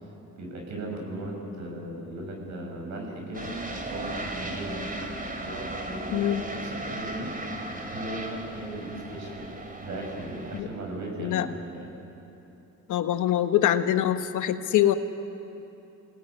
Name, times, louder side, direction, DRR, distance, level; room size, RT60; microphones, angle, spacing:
voice 1, 0.4-4.8 5.4-7.3 7.7-9.5 9.8-11.9, right 1 dB, 65° right, 1 dB, 7.5 m, -37 dB
sound 1, 3.3-10.6, right 1 dB, 30° right, 3.6 m, -36 dB
voice 2, 6.1-6.4 10.5-10.7 11.2-11.5 12.9-14.9, left 11 dB, 80° left, 9 dB, 1.3 m, -24 dB
28.0 x 19.0 x 9.6 m, 2.9 s
cardioid pair, 90°, 30 cm